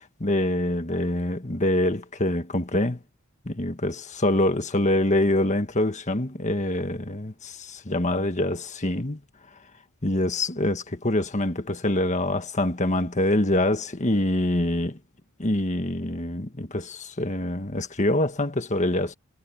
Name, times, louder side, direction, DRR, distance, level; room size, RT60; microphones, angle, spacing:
voice 1, 0.0-3.0 3.4-9.2 10.0-15.0 15.4-19.1, left 1 dB, 30° left, 1.6 m, -25 dB
head